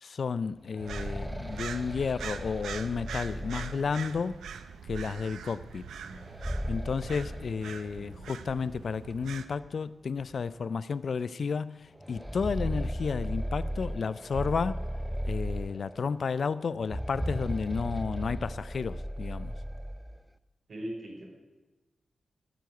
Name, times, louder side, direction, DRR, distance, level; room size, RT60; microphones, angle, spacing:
voice 1, 0.0-4.4 4.9-5.9 6.7-14.9 15.2-19.5, left 5 dB, 65° left, 0.5 m, -32 dB
sound 1, 0.5-4.3 6.1-8.3 8.6-8.7 9.6-9.7 10.2-10.3 12.0-16.1 16.8-20.2, equal, 5° right, 0.7 m, -36 dB
sound 2, 0.8-9.5, right 7 dB, 90° right, 0.6 m, -43 dB
voice 2, 5.9-6.2 8.0-8.2 20.7-21.3, right 1 dB, 65° right, 5.2 m, -41 dB
13.5 x 8.3 x 9.4 m
supercardioid pair, 45°, 0 cm